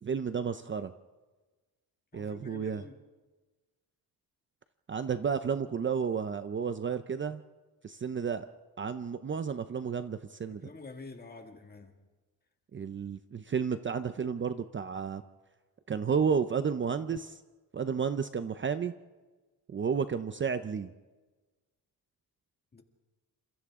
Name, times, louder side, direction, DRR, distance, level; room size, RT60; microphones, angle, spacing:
voice 1, 0.0-0.9 2.1-2.8 4.9-7.4 7.8-8.5 8.8-10.6 12.7-15.2 15.9-17.4 17.7-18.9 19.7-20.9, right 6 dB, 30° right, 0.6 m, -32 dB
voice 2, 2.1-3.0 10.6-11.9 22.7-22.8, left 3 dB, 25° left, 2.2 m, -47 dB
29.5 x 27.0 x 3.7 m
wide cardioid pair, 155°, 37 cm